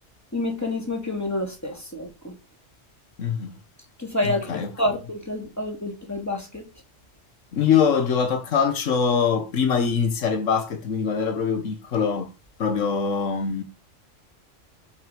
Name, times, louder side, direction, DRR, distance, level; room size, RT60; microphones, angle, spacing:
voice 1, 0.3-2.3 4.0-6.6, left 1 dB, 15° left, 2.8 m, -28 dB
voice 2, 3.2-3.5 4.2-4.7 7.5-12.3 12.6-13.6, left 6 dB, 85° left, 1.5 m, -23 dB
7.2 x 5.6 x 5.1 m
omnidirectional pair, 1.3 m